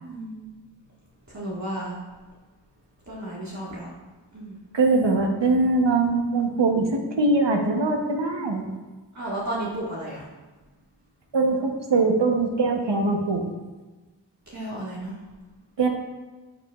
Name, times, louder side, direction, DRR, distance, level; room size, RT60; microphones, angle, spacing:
voice 1, 0.0-0.4 1.3-2.0 3.1-3.9 4.3-4.6 9.1-10.2 14.5-15.1, right 1 dB, 40° right, -7 dB, 1.7 m, -33 dB
voice 2, 4.7-8.7 11.3-13.4 15.8-15.9, right 3 dB, 75° right, 3 dB, 1.0 m, -22 dB
11.0 x 5.0 x 2.3 m, 1.2 s
wide cardioid pair, 55°, 43 cm